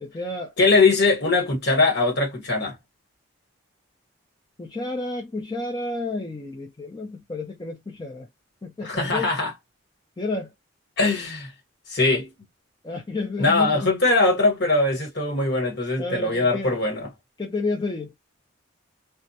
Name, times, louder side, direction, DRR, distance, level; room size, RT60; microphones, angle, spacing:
voice 1, 0.0-0.5 4.6-8.3 8.6-9.3 10.2-10.5 12.8-13.9 16.0-16.7 17.4-18.1, left 2 dB, 20° left, 0.4 m, -30 dB
voice 2, 0.6-2.7 8.8-9.5 11.0-11.5 11.9-12.3 13.4-17.1, left 3 dB, 50° left, 1.3 m, -21 dB
2.2 x 2.1 x 2.7 m
head